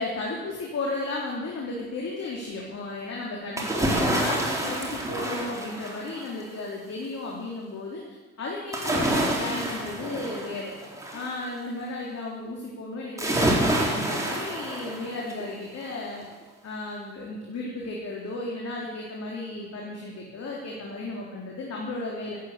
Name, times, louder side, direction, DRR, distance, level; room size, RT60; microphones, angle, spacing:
voice 1, 0.0-8.0 8.4-10.7 11.1-16.3 16.6-22.4, left 2 dB, 55° left, -3 dB, 3.8 m, -34 dB
sound 1, 3.6-6.4 8.7-11.3 13.2-15.5 15.9-16.0, right 1 dB, 10° right, 4.2 m, -27 dB
16.0 x 9.2 x 8.5 m, 1.2 s
cardioid pair, 90°, 30 cm